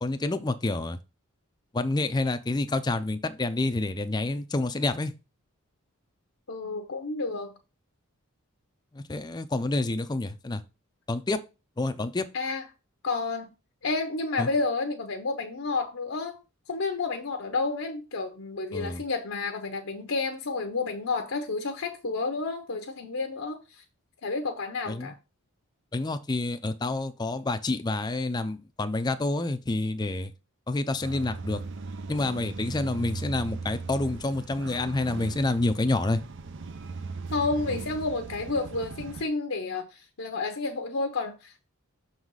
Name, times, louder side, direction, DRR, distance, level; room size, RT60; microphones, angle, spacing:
voice 1, 0.0-1.0 1.7-5.1 8.9-10.6 11.1-11.4 11.8-12.3 14.4-14.5 18.7-19.0 24.9-25.1 25.9-30.3 30.7-31.6 32.1-36.2, left 2 dB, 20° left, 0.4 m, -28 dB
voice 2, 6.5-7.5 12.3-12.6 13.0-13.5 13.8-16.4 16.7-23.6 24.2-25.1 37.3-41.7, left 3 dB, 70° left, 0.8 m, -30 dB
sound 1, 31.0-39.2, right 4 dB, 55° right, 0.6 m, -38 dB
6.3 x 4.0 x 4.7 m
head